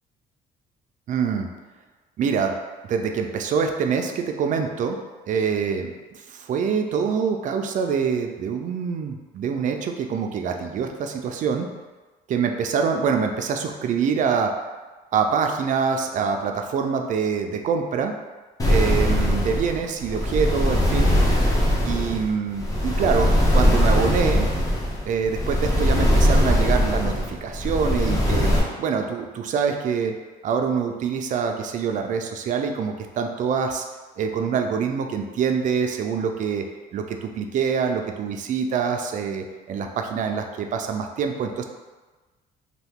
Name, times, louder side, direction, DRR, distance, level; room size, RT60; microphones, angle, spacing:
voice 1, 1.1-1.5 2.2-2.6 2.9-5.0 5.3-5.9 6.3-11.7 12.3-14.5 15.1-18.1 18.7-21.2 21.8-24.5 25.0-28.5 28.8-30.1 30.4-33.9 34.2-36.6 36.9-41.6, right 6 dB, 50° right, 4 dB, 0.4 m, -25 dB
sound 1, 18.6-28.6, equal, 20° left, 0.7 m, -21 dB
2.7 x 2.3 x 3.5 m, 1.3 s
cardioid pair, 110°, 17 cm